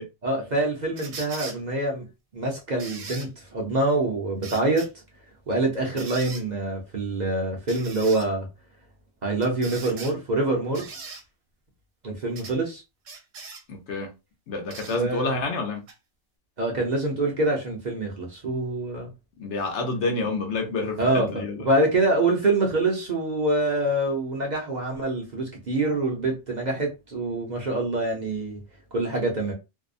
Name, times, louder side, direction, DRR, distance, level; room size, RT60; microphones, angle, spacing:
voice 1, 0.2-2.1 2.3-4.9 5.5-8.5 9.2-10.9 12.0-12.8 14.9-15.3 16.6-19.1 21.0-28.6 28.9-29.5, right 2 dB, 45° right, 0.7 m, -25 dB
sound 1, 1.0-1.6 2.8-3.3 4.4-4.9 6.0-6.4 7.7-8.3 9.4-10.1 10.7-11.2 12.4-12.6 13.0-13.6 14.7-15.0 15.9-16.0, right 4 dB, 70° right, 1.0 m, -39 dB
voice 2, 13.7-14.1 14.5-15.8 19.4-21.6, left 3 dB, 70° left, 1.0 m, -28 dB
2.7 x 2.0 x 2.5 m
omnidirectional pair, 1.2 m